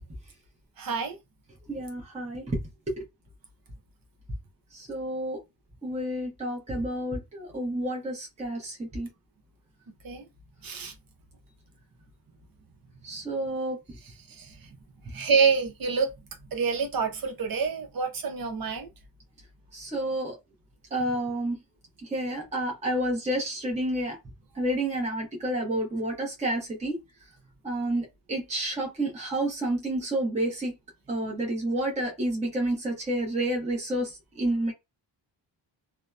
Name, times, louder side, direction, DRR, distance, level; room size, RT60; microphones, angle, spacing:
voice 1, 0.8-1.2 10.0-10.3 10.6-10.9 14.3-14.7 15.1-16.1 16.5-18.9, right 5 dB, 50° right, 0.7 m, -27 dB
voice 2, 1.7-2.6 3.0-3.1 4.7-5.4 5.8-9.1 13.0-13.8 19.7-20.4 20.9-21.6 22.0-24.2 24.5-27.0 27.6-30.7 31.1-34.7, right 1 dB, 15° right, 0.7 m, -30 dB
2.7 x 2.0 x 2.2 m
wide cardioid pair, 165°, 45 cm